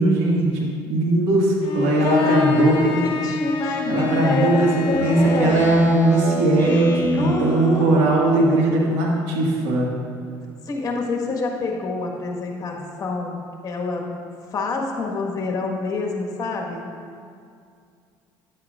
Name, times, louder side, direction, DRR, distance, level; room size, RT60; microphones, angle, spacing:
voice 1, 0.0-3.1 3.9-9.9, right 2 dB, 85° right, -3 dB, 1.7 m, -19 dB
Bowed string instrument, 1.6-6.0, left 5 dB, 70° left, 0.7 m, -26 dB
voice 2, 2.0-5.7 7.2-8.0 10.7-13.4 13.6-14.2 14.5-16.8, left 3 dB, 40° left, 0 dB, 1.5 m, -26 dB
Speech synthesizer, 4.9-8.0, equal, 25° left, 1.6 m, -25 dB
9.9 x 7.8 x 2.5 m, 2.3 s
supercardioid pair, 90°, 9 cm